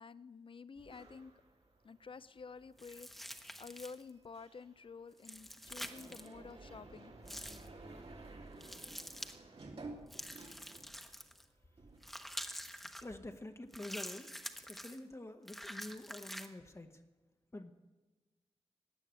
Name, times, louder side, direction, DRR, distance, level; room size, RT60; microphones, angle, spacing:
voice 1, 0.0-1.3 1.8-7.2, left 5 dB, 55° left, 16 dB, 0.5 m, -51 dB
sound 1, 0.8-11.4 11.7-12.9, right 2 dB, 65° right, 2.4 m, -54 dB
sound 2, 2.8-4.1 5.2-6.3 7.3-7.7 8.6-9.4 10.1-11.4 12.0-13.0 13.7-15.0 15.5-16.5, equal, ahead, 1.0 m, -47 dB
voice 2, 13.0-14.3 14.7-17.0 17.5-17.7, left 1 dB, 25° left, 7 dB, 0.9 m, -47 dB
16.0 x 9.8 x 8.8 m, 1.2 s
wide cardioid pair, 100°, 11 cm